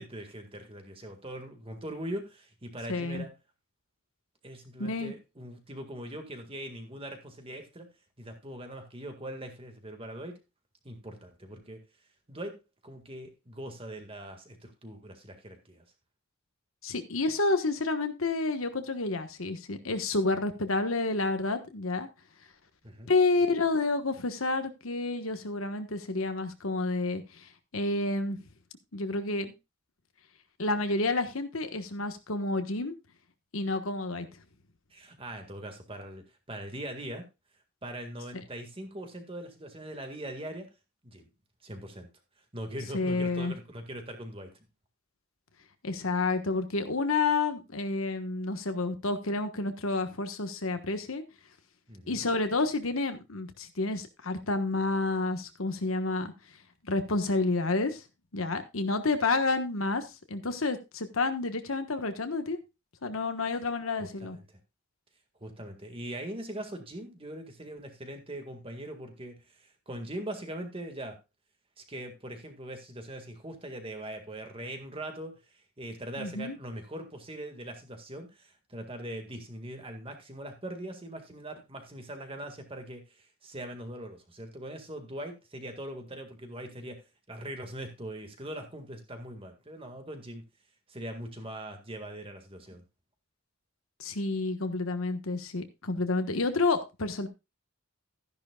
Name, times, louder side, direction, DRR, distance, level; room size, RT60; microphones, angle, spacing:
voice 1, 0.0-3.3 4.4-7.9 8.2-10.4 10.8-11.8 12.3-15.8 22.8-23.1 34.9-37.2 37.8-40.7 41.0-41.3 41.6-42.1 42.5-44.6 51.9-52.2 64.0-64.6 65.4-71.2 71.8-87.0 87.3-90.4 90.9-92.8, right 1 dB, 25° right, 5 dB, 1.8 m, -41 dB
voice 2, 2.9-3.3 4.8-5.1 16.8-22.1 23.1-27.4 27.7-28.4 28.9-29.5 30.6-33.0 33.5-34.3 42.9-43.5 45.8-51.2 52.1-56.3 56.8-58.0 58.3-62.6 63.0-64.4 76.2-76.6 94.0-97.3, left 3 dB, 70° left, 8 dB, 1.3 m, -29 dB
13.5 x 10.5 x 2.3 m, 0.25 s
head